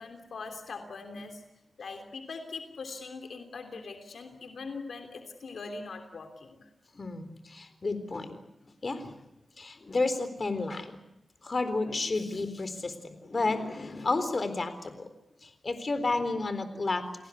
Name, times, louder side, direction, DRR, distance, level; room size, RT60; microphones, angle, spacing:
voice 1, 0.0-1.4 1.8-6.7, left 4 dB, 85° left, 5 dB, 3.1 m, -41 dB
voice 2, 6.9-8.4 8.8-9.2 9.6-11.0 11.4-15.1 15.4-17.1, left 3 dB, 50° left, 11 dB, 3.9 m, -31 dB
29.5 x 19.0 x 8.4 m, 0.88 s
cardioid pair, 65°, 0 cm